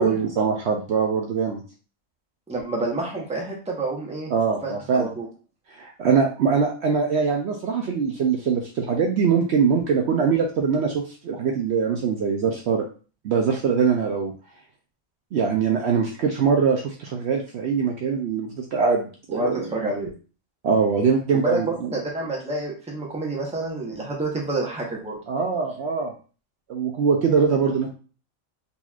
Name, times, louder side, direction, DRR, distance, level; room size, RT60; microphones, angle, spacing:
voice 1, 0.0-1.6 4.3-5.1 5.7-12.8 13.2-14.3 15.3-19.6 20.6-21.9 25.3-26.1 26.7-27.9, right 5 dB, 65° right, 1 dB, 0.8 m, -22 dB
voice 2, 2.5-4.3 4.6-5.3 19.3-20.1 21.4-25.2, right 2 dB, 5° right, -2 dB, 0.8 m, -28 dB
4.1 x 2.9 x 2.3 m, 0.36 s
omnidirectional pair, 1.4 m